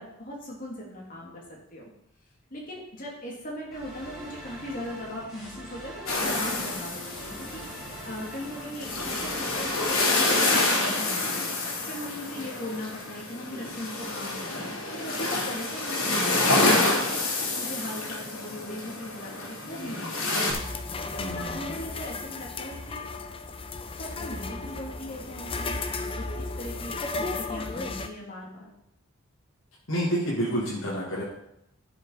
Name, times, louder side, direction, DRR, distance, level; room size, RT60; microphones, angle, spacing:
voice 1, 0.0-1.9 2.5-20.9 21.2-23.1 23.9-25.7 26.2-28.7, left 1 dB, 40° left, -3 dB, 3.1 m, -39 dB
sound 1, 3.7-10.6, right 1 dB, ahead, 4.2 m, -43 dB
sound 2, 6.1-20.5, left 2 dB, 90° left, 3.1 m, -28 dB
sound 3, 20.5-28.1, left 3 dB, 25° left, 0.7 m, -34 dB
voice 2, 21.2-21.7 29.9-31.2, equal, 75° left, -6 dB, 2.4 m, -29 dB
11.0 x 6.8 x 5.1 m, 0.79 s
head